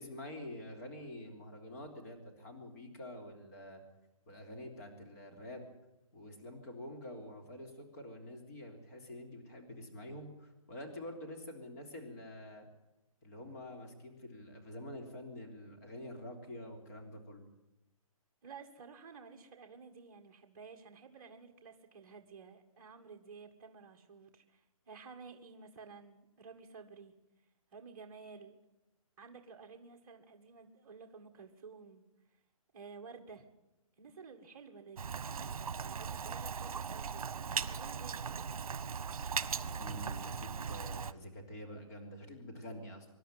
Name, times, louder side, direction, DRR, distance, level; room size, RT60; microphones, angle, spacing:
voice 1, 0.0-3.8 4.3-5.6 6.1-12.7 13.2-17.4 39.3-43.1, left 1 dB, 30° left, 3 dB, 3.4 m, -47 dB
voice 2, 18.4-27.1 27.7-28.6 29.2-32.0 32.7-33.5 34.0-38.5, right 5 dB, 35° right, 1 dB, 1.9 m, -53 dB
Rain, 35.0-41.1, right 6 dB, 75° right, 1.2 m, -39 dB
25.5 x 11.5 x 9.2 m, 0.97 s
hypercardioid pair, 175°, 18 cm